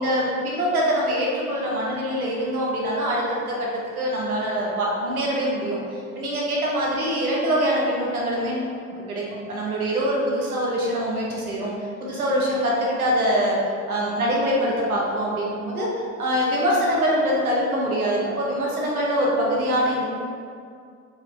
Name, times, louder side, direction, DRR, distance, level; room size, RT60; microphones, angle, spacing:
voice 1, 0.0-3.7 3.9-8.7 9.1-13.6 13.9-15.9 16.2-20.0, equal, 85° right, -4 dB, 1.4 m, -24 dB
7.8 x 4.8 x 3.2 m, 2.3 s
figure-of-eight pair, 60°, 42 cm